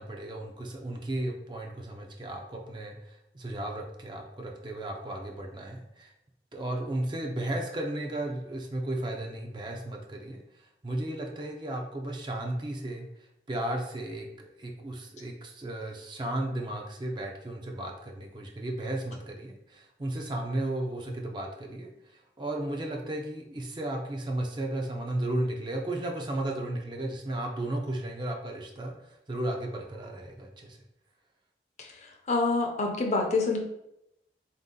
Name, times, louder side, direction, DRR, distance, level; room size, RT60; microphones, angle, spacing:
voice 1, 0.0-6.1 6.5-30.8, right 1 dB, 25° right, 1 dB, 0.5 m, -34 dB
voice 2, 31.8-33.6, left 3 dB, 40° left, 2 dB, 0.6 m, -27 dB
4.0 x 2.7 x 3.7 m, 0.83 s
head